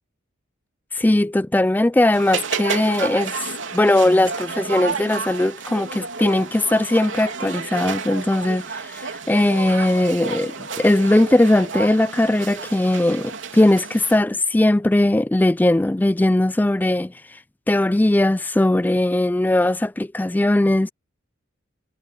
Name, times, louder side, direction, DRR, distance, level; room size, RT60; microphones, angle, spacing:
voice 1, 0.9-3.3 3.7-17.1 17.7-20.9, left 1 dB, 10° left, 0.3 m, -19 dB
sound 1, 2.1-14.2, right 5 dB, 85° right, 3.4 m, -31 dB
head